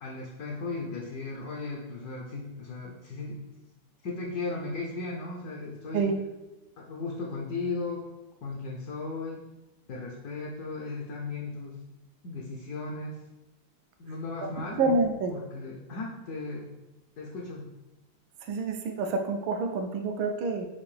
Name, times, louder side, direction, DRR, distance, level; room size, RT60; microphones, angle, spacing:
voice 1, 0.0-3.5 4.0-6.1 6.8-8.1 8.4-9.5 9.9-11.8 12.2-13.2 14.0-14.8 15.3-16.7 17.2-17.7, left 3 dB, 65° left, -2 dB, 1.0 m, -36 dB
voice 2, 14.7-15.3 18.5-20.7, right 3 dB, 85° right, 5 dB, 1.4 m, -27 dB
5.9 x 2.5 x 3.2 m, 1.0 s
omnidirectional pair, 2.1 m